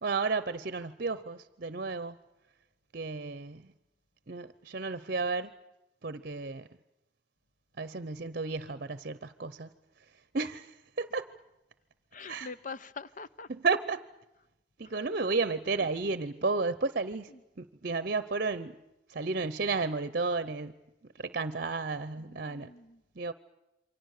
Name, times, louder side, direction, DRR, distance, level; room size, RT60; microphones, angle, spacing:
voice 1, 0.0-2.2 2.9-3.6 4.3-5.5 6.0-6.7 7.8-9.7 10.3-11.2 12.3-12.5 13.5-14.0 14.8-17.3 17.6-18.8 19.1-20.7 21.2-22.7 23.2-23.3, right 4 dB, 55° right, 0.8 m, -32 dB
voice 2, 12.1-13.5 14.8-15.2 17.3-17.4 22.1-23.0, left 4 dB, 45° left, 0.8 m, -45 dB
28.5 x 24.5 x 6.6 m
head